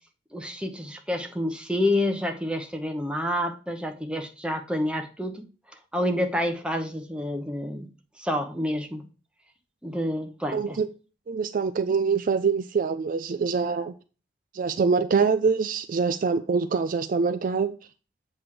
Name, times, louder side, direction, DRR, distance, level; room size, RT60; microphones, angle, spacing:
voice 1, 0.3-5.4 5.7-7.9 8.2-9.1 9.8-10.8, left 1 dB, 5° right, 0.9 m, -28 dB
voice 2, 10.5-10.9 11.3-13.9 14.5-17.8, right 5 dB, 50° right, 0.4 m, -24 dB
7.9 x 3.3 x 5.9 m
head